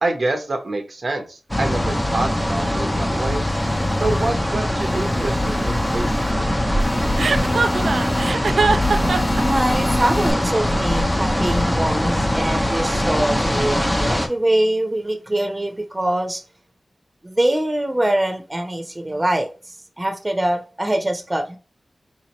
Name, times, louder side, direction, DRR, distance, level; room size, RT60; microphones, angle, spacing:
voice 1, 0.0-3.4 4.0-6.3, right 2 dB, 60° right, 0.8 m, -26 dB
sound 1, 1.5-14.3, left 1 dB, 10° left, 0.8 m, -21 dB
sound 2, 3.2-4.3 4.8-6.3 6.8-8.3 8.8-10.3, left 2 dB, 50° left, 1.1 m, -31 dB
Chuckle chortle, 7.2-9.4, right 4 dB, 85° right, 0.4 m, -21 dB
voice 2, 9.4-16.4 17.2-19.5 20.0-21.6, right 1 dB, 25° right, 0.9 m, -23 dB
3.9 x 2.9 x 2.9 m
cardioid pair, 50°, 0 cm